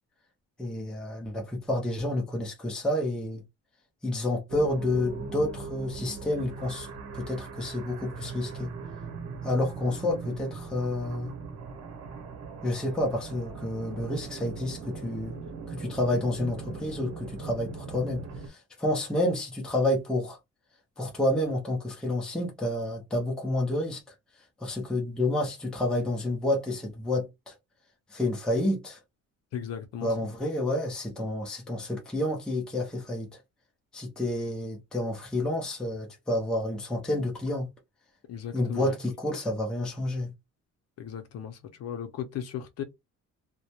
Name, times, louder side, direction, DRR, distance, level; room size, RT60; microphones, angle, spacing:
voice 1, 0.6-3.4 4.0-6.9 7.1-8.7 9.4-11.3 12.6-15.4 15.7-20.4 21.0-24.0 24.6-27.5 28.1-29.0 30.0-33.3 33.9-37.7 38.5-40.3, left 1 dB, 5° left, 0.5 m, -29 dB
sound 1, 4.5-18.5, right 4 dB, 55° right, 0.9 m, -40 dB
voice 2, 29.5-30.1 38.3-39.0 41.0-42.8, left 9 dB, 50° left, 0.6 m, -36 dB
2.3 x 2.1 x 2.8 m
cardioid pair, 175°, 31 cm